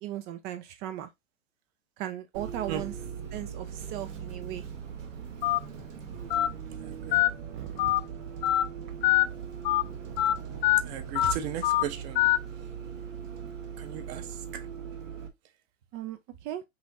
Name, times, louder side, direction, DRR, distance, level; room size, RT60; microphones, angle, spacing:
voice 1, 0.0-1.1 2.0-2.9 3.3-4.7 7.5-7.9 15.9-16.6, right 12 dB, 25° right, 0.4 m, -37 dB
Bus, 2.3-15.3, right 7 dB, 75° right, 1.4 m, -40 dB
Telephone, 5.4-5.6 6.3-6.5 7.1-7.3 7.8-8.0 8.4-8.6 9.0-9.2 9.6-9.8 10.2-10.3 10.6-10.8 11.1-11.3 11.6-11.8 12.1-12.4, left 15 dB, 30° left, 0.5 m, -23 dB
voice 2, 6.8-7.2 10.9-12.2 13.8-14.3 14.5-14.6, right 9 dB, 50° right, 1.0 m, -36 dB
5.4 x 2.9 x 2.7 m
hypercardioid pair, 100°, 39 cm